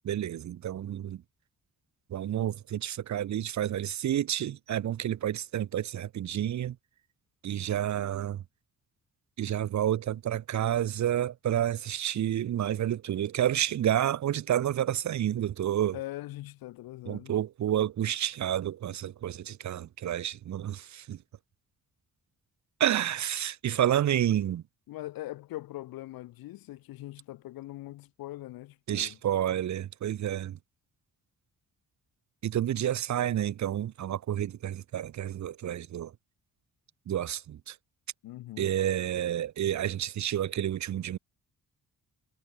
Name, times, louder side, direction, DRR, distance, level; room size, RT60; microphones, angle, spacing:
voice 1, 0.0-1.2 2.1-6.8 7.4-8.4 9.4-16.0 17.1-21.2 22.8-24.6 28.9-30.6 32.4-36.1 37.1-37.8 38.6-41.2, right 11 dB, 55° right, 0.6 m, -29 dB
voice 2, 15.9-17.4 24.9-29.2 38.2-38.7, left 16 dB, 90° left, 0.6 m, -41 dB
cardioid pair, 90°, 35 cm